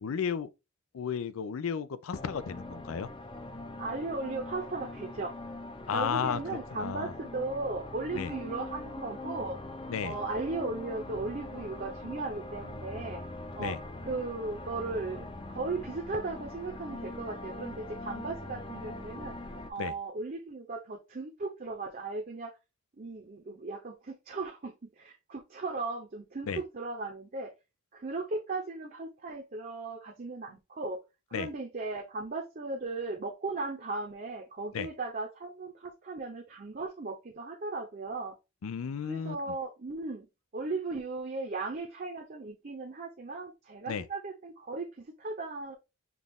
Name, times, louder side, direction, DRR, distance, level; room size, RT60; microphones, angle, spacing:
voice 1, 0.0-0.5 0.9-3.1 5.9-6.4 6.7-7.1 8.1-8.3 9.9-10.2 13.6-13.8 19.8-19.9 26.5-26.6 31.3-31.5 34.7-34.9 38.6-39.4 43.9-44.0, left 7 dB, 85° left, 0.4 m, -33 dB
sound 1, 2.1-19.7, left 2 dB, 25° left, 0.6 m, -42 dB
voice 2, 3.8-5.3 5.9-9.6 10.0-13.2 13.6-22.5 23.0-27.5 27.9-31.0 31.3-38.4 39.1-40.3 40.5-45.7, right 3 dB, 45° right, 0.7 m, -37 dB
6.0 x 2.4 x 3.5 m
head